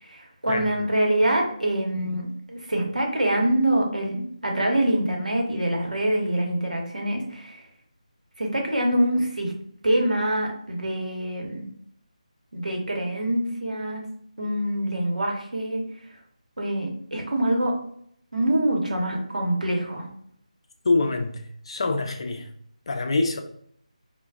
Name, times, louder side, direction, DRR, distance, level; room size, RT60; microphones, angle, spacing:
voice 1, 0.0-7.6 8.4-9.5 9.8-11.7 12.5-14.1 14.4-15.8 16.6-17.8 18.3-20.1, right 1 dB, 90° right, 0 dB, 0.9 m, -25 dB
voice 2, 20.8-22.5 22.9-23.4, left 3 dB, 45° left, 5 dB, 0.4 m, -25 dB
2.2 x 2.2 x 3.4 m, 0.67 s
figure-of-eight pair, 165°, 4 cm